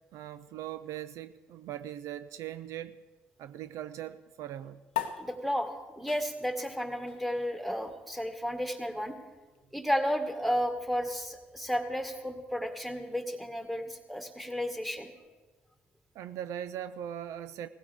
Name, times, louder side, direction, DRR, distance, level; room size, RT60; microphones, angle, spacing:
voice 1, 0.1-3.0 3.4-4.8 16.1-17.7, right 11 dB, 65° right, 0.4 m, -40 dB
sound 1, 4.9-11.7, left 12 dB, 90° left, 0.7 m, -43 dB
voice 2, 5.2-9.2 9.7-15.1, equal, ahead, 1.8 m, -33 dB
18.0 x 15.5 x 3.5 m
hypercardioid pair, 55°, 6 cm